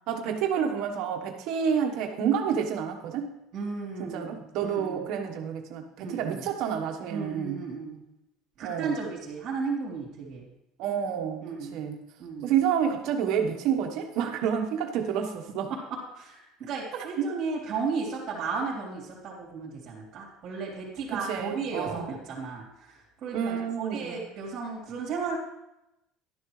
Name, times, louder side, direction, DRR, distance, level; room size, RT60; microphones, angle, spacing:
voice 1, 0.1-3.3 4.0-7.6 8.6-9.0 10.8-12.0 12.4-15.7 16.9-17.4 21.1-22.2 23.3-24.2, right 8 dB, 60° right, 3 dB, 1.2 m, -29 dB
voice 2, 3.5-5.0 6.0-6.4 7.1-8.0 8.6-10.5 11.4-11.8 12.2-12.5 15.7-15.8 16.1-25.4, right 4 dB, 40° right, -5 dB, 3.5 m, -34 dB
11.5 x 10.5 x 3.2 m, 0.88 s
cardioid pair, 140°, 0 cm